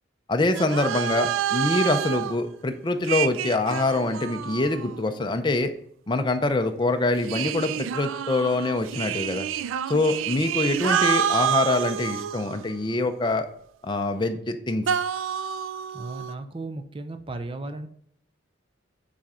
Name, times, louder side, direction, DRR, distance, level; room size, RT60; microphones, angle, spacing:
voice 1, 0.3-5.7 6.1-9.5 9.9-13.5 13.8-15.0, left 2 dB, 25° left, 7 dB, 0.5 m, -25 dB
sound 1, 0.5-2.4 3.0-5.3 7.2-12.9 14.9-16.3, right 9 dB, 85° right, 0.3 m, -28 dB
voice 2, 15.9-17.9, right 2 dB, 25° right, 8 dB, 0.5 m, -35 dB
6.2 x 4.2 x 4.8 m, 0.67 s
head